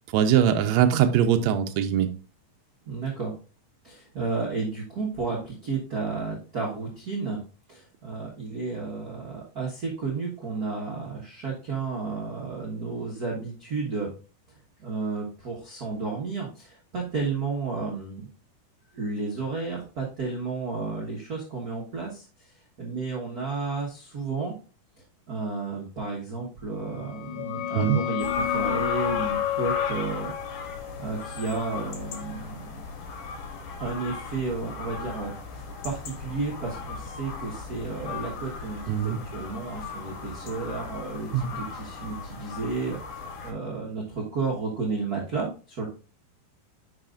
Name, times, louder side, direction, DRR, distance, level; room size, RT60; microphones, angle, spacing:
voice 1, 0.1-2.1 27.7-28.0 38.9-39.2 41.3-41.5, right 9 dB, 75° right, 6 dB, 1.6 m, -21 dB
voice 2, 2.8-3.3 3.8-7.4 7.7-14.1 14.5-18.3 18.9-22.5 22.8-24.5 25.3-30.3 31.0-32.9 33.8-45.9, right 4 dB, 55° right, -3 dB, 1.0 m, -32 dB
sound 1, 26.9-32.3, left 13 dB, 90° left, 2.3 m, -31 dB
sound 2, 28.2-43.5, left 4 dB, 65° left, 2.7 m, -37 dB
10.5 x 4.9 x 2.5 m, 0.36 s
omnidirectional pair, 3.9 m